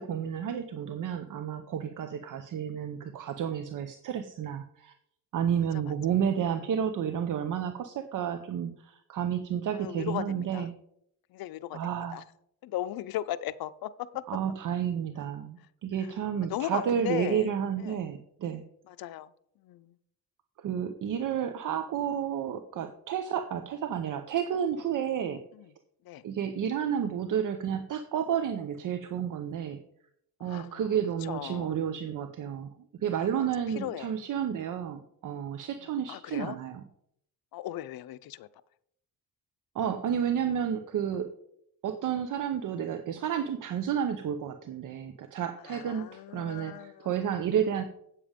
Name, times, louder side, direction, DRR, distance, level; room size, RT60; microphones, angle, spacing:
voice 1, 0.0-4.9 5.3-10.7 11.7-12.2 14.3-18.6 20.6-25.4 26.2-29.8 30.4-32.7 33.0-36.8 39.7-41.3 41.8-47.8, right 8 dB, 60° right, 9 dB, 0.8 m, -31 dB
voice 2, 9.7-10.7 11.3-11.8 12.1-12.2 12.6-14.2 16.5-17.5 17.8-18.0 18.9-19.3 19.6-19.9 25.5-25.7 26.0-26.2 30.4-30.9 31.2-31.7 33.1-33.3 33.7-34.1 36.1-36.6 37.5-38.5 45.7-47.1, left 13 dB, 75° left, 14 dB, 0.6 m, -37 dB
8.5 x 7.3 x 5.1 m, 0.72 s
cardioid pair, 110°, 36 cm